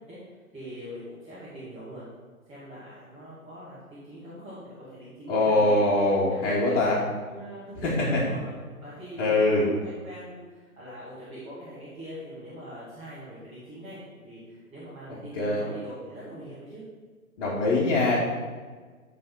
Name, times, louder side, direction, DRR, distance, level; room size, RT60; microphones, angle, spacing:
voice 1, 0.5-2.1 2.5-5.8 6.2-8.5 8.8-16.8, equal, 15° right, -10 dB, 2.3 m, -42 dB
voice 2, 5.3-7.0 7.8-8.2 9.2-9.7 15.3-15.6 17.4-18.2, left 2 dB, 40° left, -8 dB, 1.9 m, -23 dB
12.5 x 4.2 x 4.0 m, 1.5 s
figure-of-eight pair, 135°, 43 cm